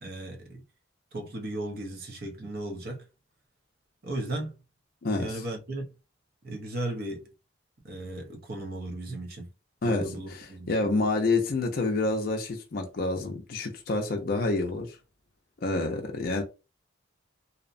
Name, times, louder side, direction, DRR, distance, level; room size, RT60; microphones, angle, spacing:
voice 1, 0.0-0.6 1.1-3.1 4.0-4.6 5.2-5.9 6.4-7.3 7.8-9.5 9.8-10.7, right 1 dB, 50° right, 0.7 m, -36 dB
voice 2, 10.7-15.0 15.6-16.4, left 3 dB, 50° left, 0.4 m, -27 dB
2.7 x 2.0 x 2.5 m
head